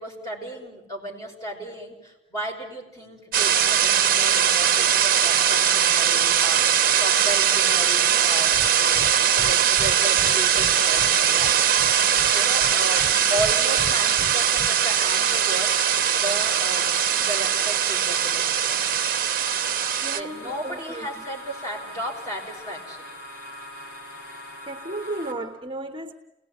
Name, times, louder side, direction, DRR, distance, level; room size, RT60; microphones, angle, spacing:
voice 1, 0.0-9.1 9.3-15.8 16.2-16.9 17.1-18.8 20.1-23.1, right 1 dB, 20° left, -1 dB, 5.4 m, -35 dB
sound 1, 3.3-20.2, right 9 dB, 50° right, 0.9 m, -21 dB
Breathing, 8.5-8.7 9.0-9.1 9.4-9.5 9.8-11.1 11.4-12.3 12.6-13.5 13.8-14.7, right 1 dB, 5° right, 2.7 m, -37 dB
sound 2, 11.9-25.3, equal, 75° left, 5.2 m, -40 dB
voice 2, 20.0-21.1 24.6-26.1, right 2 dB, 30° right, 5 dB, 1.1 m, -34 dB
28.5 x 18.5 x 9.4 m, 0.97 s
head